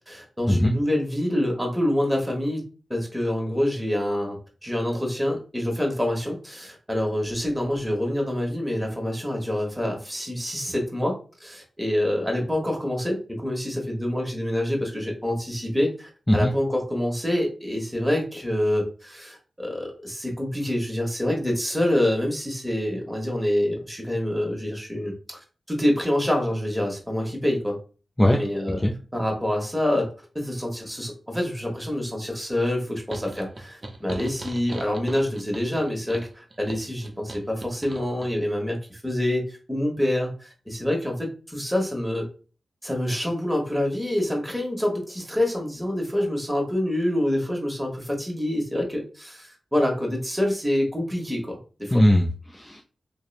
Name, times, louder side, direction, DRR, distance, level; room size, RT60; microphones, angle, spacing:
voice 1, 0.1-2.6 2.9-25.1 25.7-27.8 28.3-28.8 29.1-30.1 30.3-42.3 42.8-52.0, left 1 dB, 10° right, 0 dB, 1.0 m, -26 dB
sound 1, 33.1-38.3, right 2 dB, 40° right, 0.5 m, -39 dB
voice 2, 51.9-52.8, left 1 dB, 20° left, 1 dB, 0.3 m, -19 dB
2.8 x 2.0 x 2.3 m, 0.37 s
cardioid pair, 40°, 0 cm